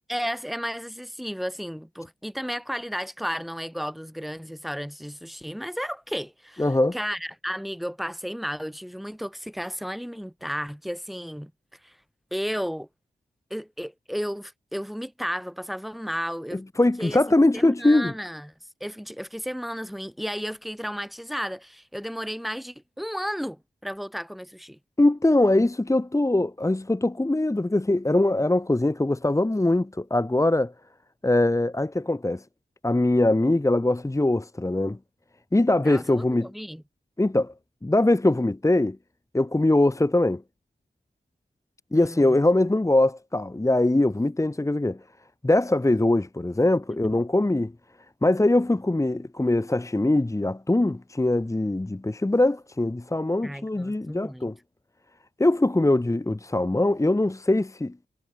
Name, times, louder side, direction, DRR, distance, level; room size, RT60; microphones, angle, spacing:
voice 1, 0.1-6.7 6.9-11.5 11.8-11.9 12.3-12.9 13.5-16.6 17.0-17.2 17.5-18.5 18.8-24.8 35.8-36.8 41.9-42.4 46.9-47.0 53.4-54.5, equal, ahead, 1.7 m, -33 dB
voice 2, 6.6-7.0 16.5-18.1 25.0-30.7 31.2-32.4 32.8-35.0 35.5-36.5 37.2-37.5 37.8-39.0 39.3-40.4 41.9-45.0 45.4-47.7 48.2-54.5 55.4-58.1, left 2 dB, 15° left, 1.1 m, -22 dB
cardioid pair, 60°, 18 cm